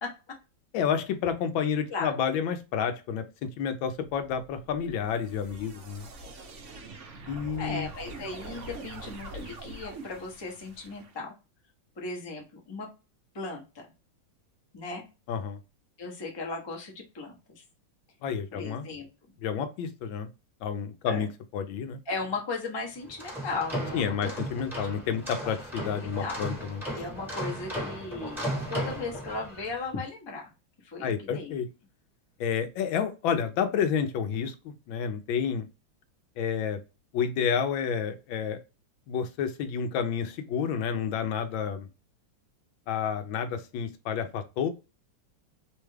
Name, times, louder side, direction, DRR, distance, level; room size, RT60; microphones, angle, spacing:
voice 1, 0.0-0.4 1.9-2.1 7.6-11.3 12.0-12.9 13.3-13.9 14.7-15.0 16.0-17.6 18.5-19.1 21.1-21.3 22.1-24.3 25.4-25.5 26.0-26.4 26.9-30.5 30.8-31.5, left 3 dB, 35° left, 0 dB, 0.4 m, -36 dB
voice 2, 0.7-3.2 3.6-6.1 7.3-7.9 15.3-15.6 18.2-18.9 19.4-20.3 20.6-22.0 23.9-26.8 31.0-31.7 32.4-35.7 36.4-36.8 37.1-38.6 39.1-41.9 42.9-44.7, left 7 dB, 75° left, 8 dB, 1.3 m, -30 dB
sound 1, 4.1-11.1, right 2 dB, 70° right, 0.7 m, -44 dB
sound 2, 23.0-29.7, equal, ahead, 0.9 m, -36 dB
3.4 x 2.3 x 3.1 m, 0.29 s
omnidirectional pair, 2.2 m